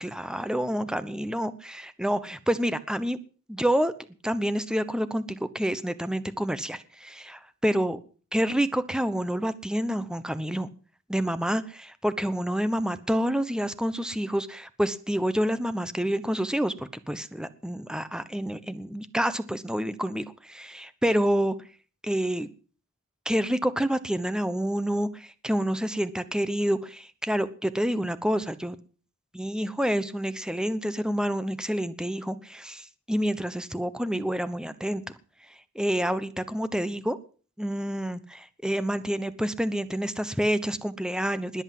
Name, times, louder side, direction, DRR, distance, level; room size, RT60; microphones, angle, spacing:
voice 1, 0.0-3.2 3.5-3.9 4.2-8.0 8.3-10.7 11.1-21.5 22.0-22.5 23.2-28.8 29.3-35.0 35.7-37.2 37.6-41.6, equal, 5° right, 1.0 m, -28 dB
20.5 x 8.1 x 7.8 m
head